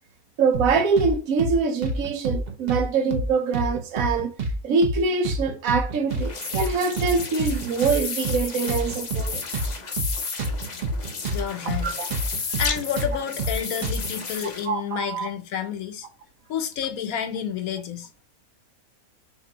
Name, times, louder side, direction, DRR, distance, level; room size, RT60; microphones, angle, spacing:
voice 1, 0.4-4.3 4.6-9.4 11.8-12.1 14.6-15.3, right 5 dB, 70° right, 1.1 m, -24 dB
sound 1, 0.5-1.1 1.4-1.6 1.8-2.8 3.1-3.3 3.5-4.6 4.8-5.0 5.2-6.3 6.5-6.7 7.0-8.4 8.7-11.4 11.7-11.8 12.1-14.1, right 2 dB, 40° right, 0.7 m, -28 dB
sound 2, 6.1-14.7, left 5 dB, 45° left, 0.5 m, -33 dB
voice 2, 11.3-11.9 12.6-16.1 16.5-18.1, left 8 dB, 75° left, 1.1 m, -30 dB
6.7 x 2.3 x 2.9 m
omnidirectional pair, 1.6 m